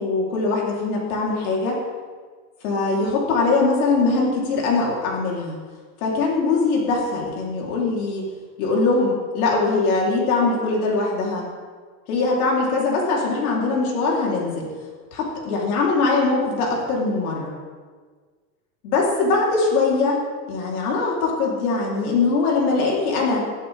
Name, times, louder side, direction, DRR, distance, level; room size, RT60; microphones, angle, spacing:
voice 1, 0.0-1.8 2.6-5.6 6.0-8.2 8.6-11.4 12.1-14.7 15.1-17.5 18.8-20.2 20.5-23.4, left 3 dB, 90° left, -3 dB, 3.9 m, -21 dB
24.5 x 8.7 x 3.7 m, 1.5 s
supercardioid pair, 165°, 43 cm